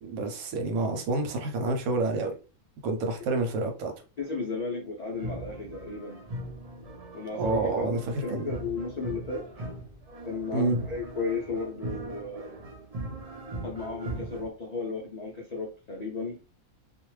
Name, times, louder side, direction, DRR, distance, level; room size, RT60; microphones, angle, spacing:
voice 1, 0.0-2.3 2.8-3.9 7.4-8.5 10.5-10.8, right 3 dB, 85° right, 1.1 m, -28 dB
voice 2, 4.2-6.3 7.1-9.5 10.2-12.6 13.6-16.4, left 4 dB, 65° left, 0.4 m, -34 dB
sound 1, 5.1-14.5, right 1 dB, 50° right, 0.4 m, -39 dB
2.5 x 2.1 x 3.1 m
omnidirectional pair, 1.4 m